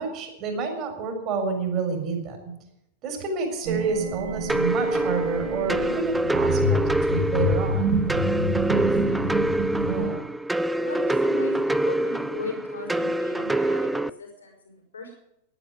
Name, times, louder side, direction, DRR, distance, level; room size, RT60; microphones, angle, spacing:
voice 1, 0.0-2.5 3.0-6.8 7.1-8.0 9.8-10.2, right 5 dB, 35° right, 3 dB, 4.1 m, -29 dB
sound 1, 3.6-10.1, right 1 dB, 60° right, 4.3 m, -28 dB
sound 2, 4.5-14.1, right 1 dB, 5° right, 0.4 m, -25 dB
voice 2, 8.6-9.6 10.7-15.2, left 3 dB, 70° left, 0 dB, 4.5 m, -38 dB
11.0 x 10.0 x 9.2 m, 0.81 s
figure-of-eight pair, 90°, 0 cm